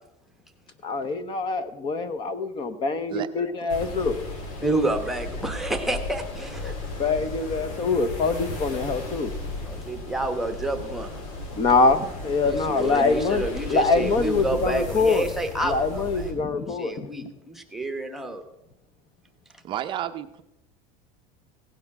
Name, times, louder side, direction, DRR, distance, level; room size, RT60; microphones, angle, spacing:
voice 1, 0.8-4.2 6.6-6.7 7.0-9.3 11.6-13.4 13.7-15.3 15.6-17.1, left 4 dB, 25° left, 12 dB, 0.8 m, -24 dB
sound 1, 3.7-16.3, left 2 dB, 85° left, 3.1 m, -35 dB
voice 2, 4.6-6.7 9.6-11.1 12.4-16.3 16.6-18.4, right 2 dB, ahead, 5 dB, 1.0 m, -29 dB
voice 3, 19.6-20.4, right 11 dB, 30° right, 8 dB, 0.6 m, -31 dB
16.5 x 9.2 x 5.9 m, 0.87 s
cardioid pair, 175°, 17 cm